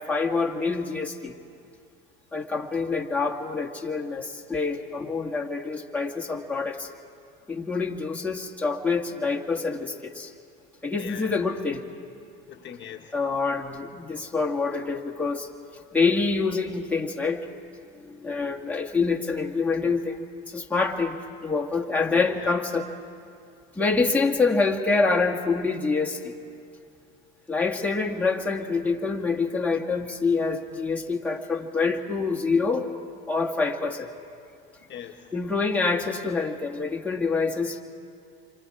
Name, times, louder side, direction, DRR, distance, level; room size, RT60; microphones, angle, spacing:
voice 1, 0.0-1.3 2.3-6.9 7.5-10.3 10.8-11.8 13.1-15.5 15.9-17.4 18.0-22.9 23.8-26.3 27.5-32.9 33.3-34.1 35.3-37.8, left 4 dB, 5° left, -1 dB, 1.9 m, -26 dB
voice 2, 11.0-11.3 12.5-13.2 19.8-19.9 21.9-22.5 34.8-35.4, left 8 dB, 40° left, 3 dB, 1.4 m, -41 dB
28.5 x 25.0 x 4.9 m, 2.4 s
supercardioid pair, 105°, 30 cm